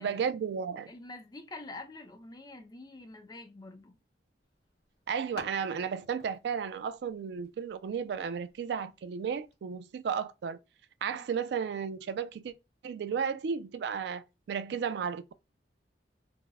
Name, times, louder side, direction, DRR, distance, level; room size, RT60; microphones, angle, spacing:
voice 1, 0.0-0.9 5.1-10.6 11.0-12.5 12.8-15.3, right 6 dB, 70° right, 0.3 m, -33 dB
voice 2, 0.9-4.0 11.1-11.4, left 2 dB, 20° left, 0.5 m, -46 dB
sound 1, 4.4-9.6, left 1 dB, 70° left, 1.7 m, -54 dB
3.4 x 2.0 x 3.3 m
head